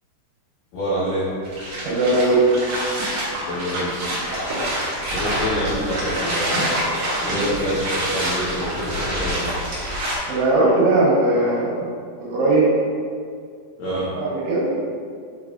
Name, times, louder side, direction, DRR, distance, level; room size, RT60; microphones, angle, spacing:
voice 1, 0.7-1.3 3.5-3.9 5.0-6.8 7.2-9.5 13.8-14.1, equal, 75° left, -10 dB, 1.9 m, -26 dB
sound 1, 1.4-10.2, right 1 dB, 60° right, 1.9 m, -26 dB
voice 2, 1.8-2.6 10.3-11.9 12.2-12.7 13.9-14.7, right 2 dB, 75° right, -6 dB, 3.6 m, -19 dB
6.9 x 5.8 x 2.5 m, 2.2 s
omnidirectional pair, 5.5 m